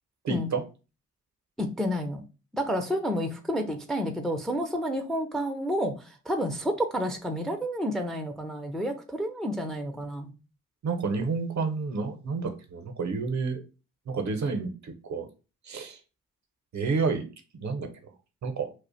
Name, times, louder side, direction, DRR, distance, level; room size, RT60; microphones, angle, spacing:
voice 1, 0.2-0.6 10.8-13.6 14.1-15.3 15.7-16.0 16.7-17.3 17.5-17.9 18.4-18.7, right 4 dB, 50° right, 7 dB, 0.7 m, -30 dB
voice 2, 1.6-2.2 2.5-10.3, equal, ahead, 5 dB, 0.5 m, -30 dB
2.4 x 2.1 x 3.9 m, 0.32 s
hypercardioid pair, 40°, 37 cm